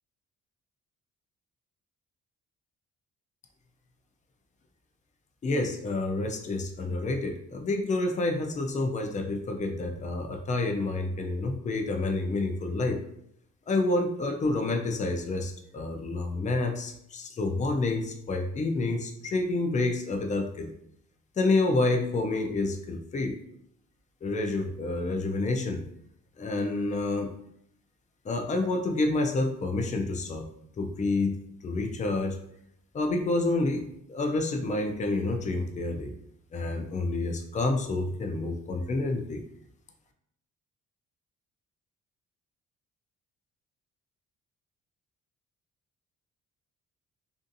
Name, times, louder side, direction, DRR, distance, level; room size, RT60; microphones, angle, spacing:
voice 1, 5.4-13.0 13.7-20.7 21.4-23.4 24.2-25.8 26.4-27.3 28.2-30.4 30.8-32.4 32.9-36.1 36.5-39.4, left 2 dB, 25° left, 4 dB, 0.4 m, -28 dB
2.5 x 2.4 x 2.5 m, 0.74 s
cardioid pair, 90°, 30 cm